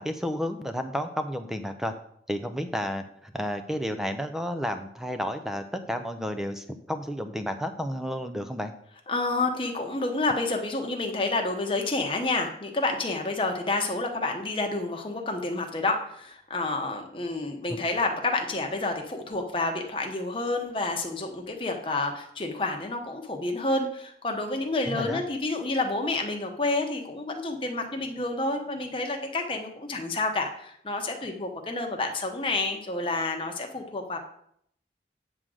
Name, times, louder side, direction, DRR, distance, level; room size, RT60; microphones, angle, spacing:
voice 1, 0.0-1.9 2.3-8.7 17.7-17.8 24.9-25.2, equal, 5° right, 7 dB, 0.5 m, -31 dB
voice 2, 9.1-34.2, left 2 dB, 30° left, 3 dB, 1.0 m, -29 dB
8.9 x 3.8 x 6.3 m, 0.69 s
head